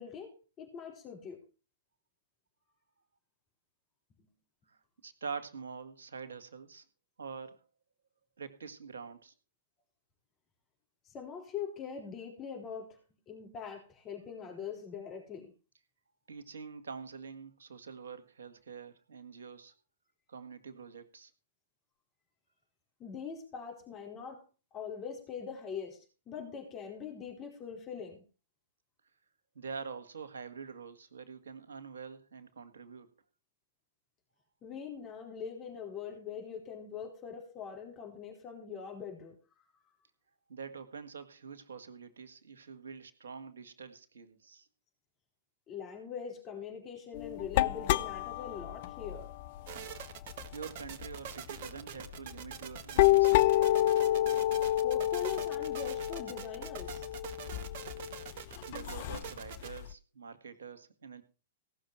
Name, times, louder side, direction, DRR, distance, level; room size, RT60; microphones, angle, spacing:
voice 1, 0.0-1.4 11.0-13.0 13.3-15.5 23.0-24.4 24.7-28.2 34.6-39.3 45.7-49.3 54.8-57.1, left 7 dB, 30° left, 2 dB, 4.5 m, -42 dB
voice 2, 5.0-6.8 7.2-7.6 8.4-9.3 16.3-19.7 20.3-21.3 29.6-33.1 40.5-44.7 50.5-53.5 58.7-61.2, right 6 dB, 70° right, 10 dB, 2.0 m, -45 dB
sound 1, 47.1-51.1 51.6-51.8 52.1-59.9, left 14 dB, 50° left, 0.5 m, -29 dB
sound 2, 49.7-59.8, right 8 dB, 50° right, 1.6 m, -45 dB
17.5 x 6.5 x 6.0 m, 0.33 s
figure-of-eight pair, 105°, 0 cm